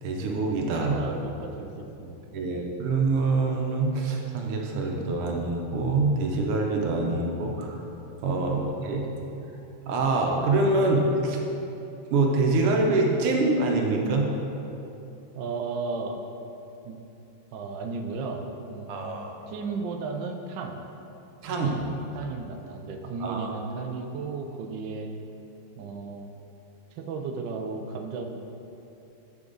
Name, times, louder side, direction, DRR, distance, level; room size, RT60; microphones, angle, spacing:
voice 1, 0.0-1.0 2.3-7.8 8.2-9.1 9.9-11.4 12.1-14.3 18.9-19.4 21.4-21.8 23.2-23.5, right 3 dB, 90° right, 0 dB, 1.8 m, -25 dB
voice 2, 0.9-2.7 8.4-8.7 10.9-11.1 15.3-16.2 16.8-17.0 17.5-19.2 19.5-20.7 22.1-25.1 25.8-26.3 27.0-28.3, right 4 dB, 70° right, 3 dB, 1.1 m, -35 dB
9.6 x 5.9 x 3.9 m, 2.9 s
omnidirectional pair, 2.4 m